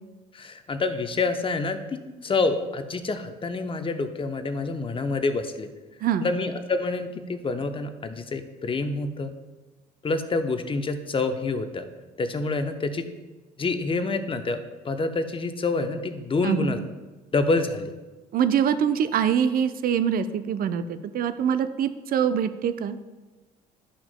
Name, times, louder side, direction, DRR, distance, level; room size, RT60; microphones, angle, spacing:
voice 1, 0.3-5.7 6.2-9.3 10.0-11.8 12.2-13.1 13.6-16.8 17.3-17.9, left 3 dB, 25° left, 8 dB, 0.8 m, -27 dB
voice 2, 6.0-6.3 16.4-16.7 18.3-23.0, right 8 dB, 45° right, 11 dB, 0.5 m, -24 dB
11.0 x 5.9 x 2.2 m, 1.2 s
hypercardioid pair, 55°, 21 cm